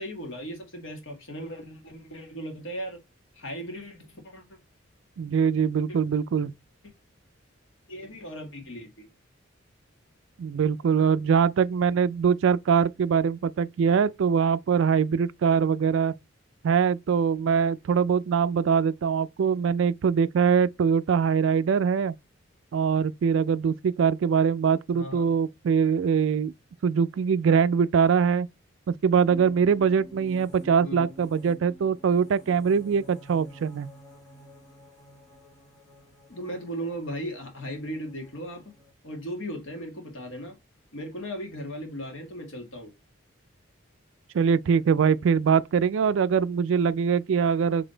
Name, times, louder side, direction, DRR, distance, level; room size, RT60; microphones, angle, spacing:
voice 1, 0.0-3.0 3.3-4.6 5.9-6.0 7.9-9.1 24.9-25.3 30.8-31.1 36.3-38.7 39.0-40.6 40.9-42.9, equal, 70° left, 1.6 m, -37 dB
voice 2, 5.2-6.5 10.4-16.1 16.6-22.1 22.7-26.5 26.8-28.5 28.9-33.9 44.3-47.9, right 6 dB, 65° right, 0.3 m, -23 dB
sound 1, 29.3-38.9, equal, 15° left, 1.3 m, -50 dB
4.0 x 3.3 x 3.8 m
head